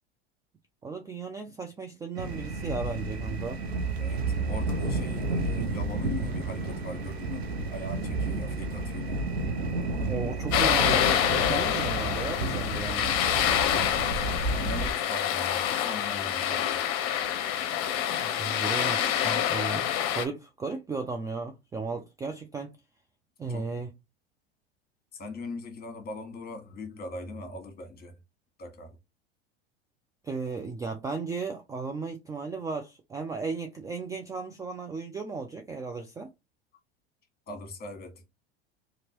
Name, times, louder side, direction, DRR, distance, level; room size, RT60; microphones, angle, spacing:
voice 1, 0.8-3.6 10.0-13.2 18.1-22.7 23.4-23.9 30.2-36.3, right 4 dB, 10° right, 0.3 m, -35 dB
sound 1, 2.1-14.9, right 3 dB, 85° right, 0.7 m, -31 dB
voice 2, 4.0-9.2 13.7-14.2 14.5-16.8 23.5-23.8 25.1-28.1 28.6-29.0 37.5-38.2, left 2 dB, 30° left, 1.3 m, -40 dB
sound 2, 10.5-20.3, left 10 dB, 50° left, 0.7 m, -27 dB
2.9 x 2.5 x 2.9 m
hypercardioid pair, 80°, 31 cm